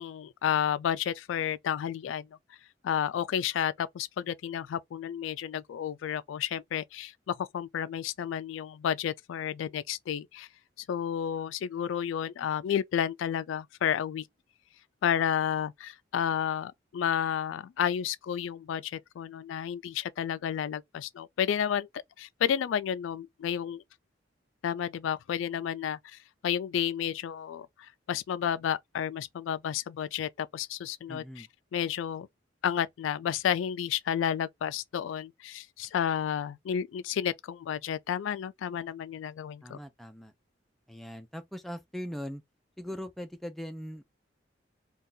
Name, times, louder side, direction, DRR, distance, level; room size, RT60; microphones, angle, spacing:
voice 1, 0.0-2.3 2.8-10.5 10.8-14.3 15.0-21.9 22.2-23.8 24.6-31.5 31.7-32.3 32.6-39.8, left 9 dB, 85° left, 0.3 m, -31 dB
voice 2, 31.1-31.5 39.6-40.3 40.9-42.4 42.8-44.0, equal, ahead, 0.3 m, -40 dB
2.7 x 2.3 x 3.6 m
head